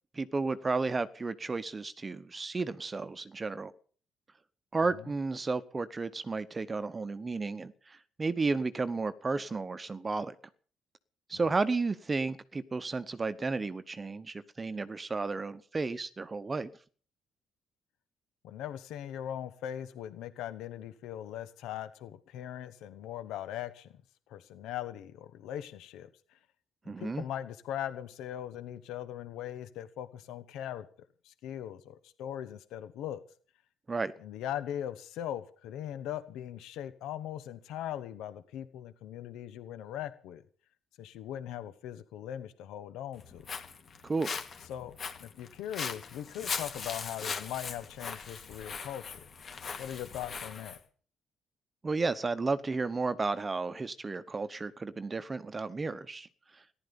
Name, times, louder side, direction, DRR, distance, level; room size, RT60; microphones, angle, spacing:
voice 1, 0.1-3.7 4.7-10.3 11.3-16.7 26.9-27.2 33.9-34.1 44.0-44.3 51.8-56.3 56.5-56.6, right 3 dB, 25° right, 12 dB, 0.9 m, -33 dB
voice 2, 18.4-23.9 24.3-26.4 26.8-30.9 31.2-33.2 34.2-40.4 41.0-43.4 44.7-44.9 45.2-49.3 49.8-50.8, left 11 dB, 85° left, 13 dB, 1.1 m, -40 dB
Walk footsteps, 43.1-50.8, left 5 dB, 45° left, 2.4 m, -40 dB
14.5 x 11.5 x 6.9 m, 0.43 s
cardioid pair, 100°, 0 cm